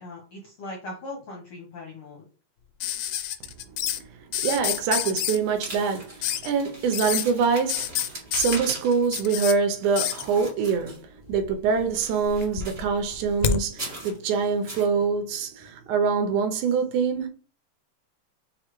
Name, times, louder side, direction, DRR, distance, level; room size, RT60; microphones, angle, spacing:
voice 1, 0.0-2.2, left 2 dB, 65° left, 1.4 m, -39 dB
sound 1, 2.8-4.0 4.3-5.4 6.2-6.5 6.9-7.3 7.7-9.5 10.0-10.3 11.3-11.9 12.2-13.6 15.0-15.1, left 10 dB, 80° left, 1.9 m, -28 dB
voice 2, 4.4-17.3, right 5 dB, 85° right, 2.2 m, -25 dB
sound 2, 5.3-11.3 11.7-13.0 13.7-14.2 14.7-14.9, right 1 dB, 25° right, 1.3 m, -41 dB
6.3 x 2.4 x 3.0 m
omnidirectional pair, 3.5 m